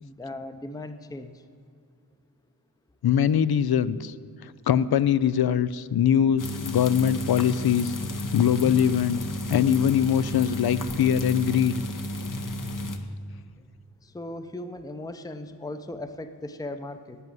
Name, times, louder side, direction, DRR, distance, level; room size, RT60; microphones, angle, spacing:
voice 1, 0.0-1.4 14.0-17.2, left 1 dB, 10° left, 9 dB, 0.6 m, -38 dB
voice 2, 3.0-4.1 4.4-7.9 8.3-9.2 9.5-11.8, left 9 dB, 75° left, 17 dB, 0.5 m, -22 dB
sound 1, 6.4-13.0, left 1 dB, 55° left, 1.0 m, -32 dB
11.0 x 9.4 x 7.7 m, 2.4 s
wide cardioid pair, 80°, 38 cm